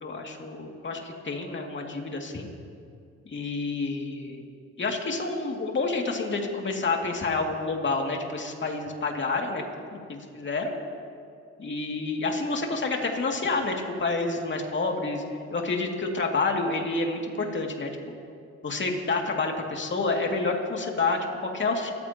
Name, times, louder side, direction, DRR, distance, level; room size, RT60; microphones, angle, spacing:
voice 1, 0.0-2.5 3.2-4.4 4.8-9.6 9.9-10.7 11.6-13.7 14.0-15.2 15.5-17.9 18.6-21.9, left 3 dB, 40° left, 1 dB, 2.6 m, -29 dB
29.0 x 14.5 x 3.0 m, 2.4 s
cardioid pair, 90°, 30 cm